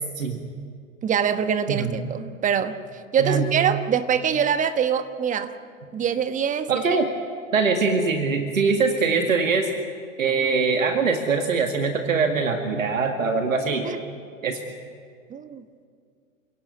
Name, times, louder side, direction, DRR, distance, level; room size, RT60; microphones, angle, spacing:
voice 1, 1.0-2.8 3.1-5.5 5.9-6.8 13.8-14.0 15.3-15.6, right 8 dB, 20° right, 10 dB, 1.3 m, -24 dB
voice 2, 3.2-3.5 6.7-7.1 7.5-9.7 10.2-13.9 14.4-14.6, right 4 dB, 75° right, 4 dB, 2.1 m, -22 dB
28.5 x 17.0 x 9.5 m, 2.2 s
figure-of-eight pair, 105°, 40 cm